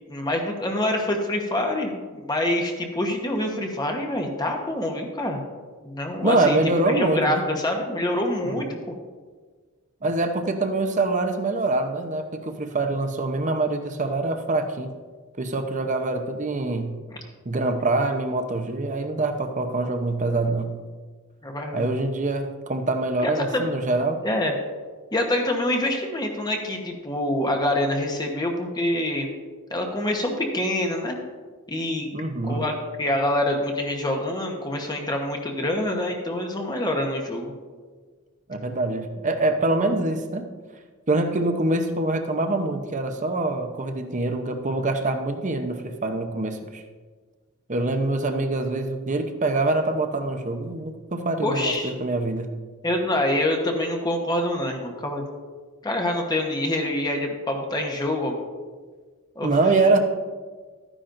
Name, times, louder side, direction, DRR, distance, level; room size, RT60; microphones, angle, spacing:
voice 1, 0.1-5.4 5.8-6.6 6.9-8.9 21.4-21.9 23.2-23.7 24.2-24.5 25.1-29.3 29.7-31.2 31.7-32.1 32.4-37.5 51.4-51.9 52.8-55.2 55.8-58.4 59.4-59.5, left 1 dB, 20° left, 2 dB, 1.0 m, -26 dB
voice 2, 6.2-7.4 8.4-8.8 10.0-15.0 15.4-17.0 17.4-20.8 21.7-24.2 32.1-32.6 38.5-40.5 41.1-46.8 47.7-52.6 59.4-60.0, right 2 dB, 35° right, 6 dB, 0.8 m, -25 dB
13.0 x 10.0 x 2.6 m, 1.5 s
head